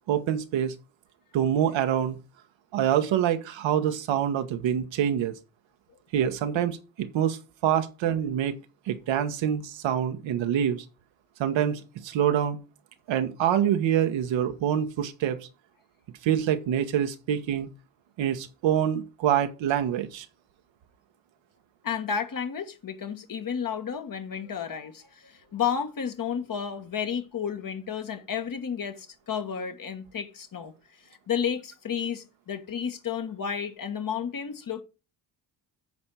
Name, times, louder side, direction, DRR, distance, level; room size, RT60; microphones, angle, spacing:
voice 1, 0.1-0.7 1.3-2.2 2.7-5.3 6.1-8.5 8.9-10.8 11.4-12.6 13.1-15.4 16.2-17.7 18.2-20.3, right 10 dB, 70° right, 1.2 m, -26 dB
voice 2, 21.8-30.7 31.1-34.8, left 7 dB, 45° left, 1.6 m, -32 dB
11.0 x 4.4 x 5.5 m
supercardioid pair, 60°, 48 cm